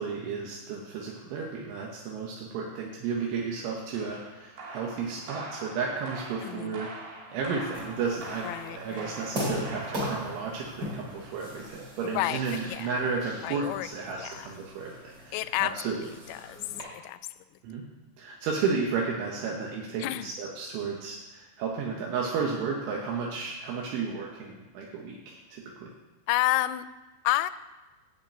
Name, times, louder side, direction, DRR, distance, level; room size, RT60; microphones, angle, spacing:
voice 1, 0.0-16.1 17.6-17.8 18.2-25.9, right 5 dB, 80° right, -2 dB, 3.8 m, -33 dB
sound 1, 3.9-14.1, right 2 dB, 60° right, 4.7 m, -44 dB
voice 2, 6.4-6.8 8.4-9.1 12.0-12.4 12.7-12.9 13.4-13.9 14.2-14.5 15.3-15.9 16.3-16.6 16.9-17.2 20.0-20.3 26.3-26.9 27.2-27.5, left 16 dB, 85° left, 13 dB, 2.8 m, -30 dB
sound 2, 7.7-16.8, equal, 25° right, 3.0 m, -39 dB
8.4 x 7.5 x 8.7 m, 1.2 s
omnidirectional pair, 5.4 m